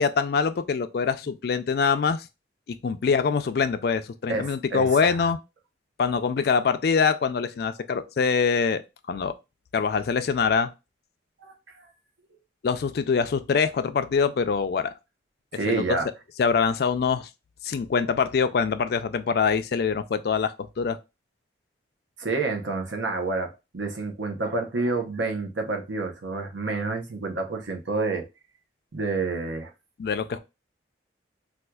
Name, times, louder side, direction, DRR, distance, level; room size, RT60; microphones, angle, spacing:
voice 1, 0.0-2.3 2.7-5.4 6.0-8.8 9.1-9.3 9.7-10.7 12.6-14.9 15.7-16.0 16.4-17.3 17.6-21.0 30.0-30.4, left 5 dB, 55° left, 0.3 m, -24 dB
voice 2, 4.3-5.3 11.4-11.9 15.5-16.1 22.2-28.2 28.9-29.7, right 3 dB, 80° right, 0.8 m, -29 dB
4.3 x 2.4 x 2.2 m
head